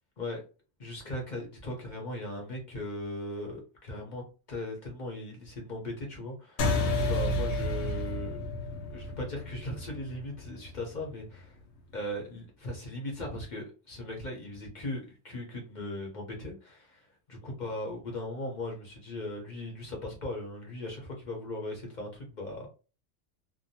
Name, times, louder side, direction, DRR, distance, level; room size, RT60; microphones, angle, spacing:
voice 1, 0.8-8.4 8.9-11.6 11.9-22.7, left 1 dB, 40° left, 0.7 m, -38 dB
sound 1, 6.6-11.4, left 1 dB, 70° left, 0.9 m, -31 dB
2.7 x 2.0 x 2.7 m
omnidirectional pair, 1.5 m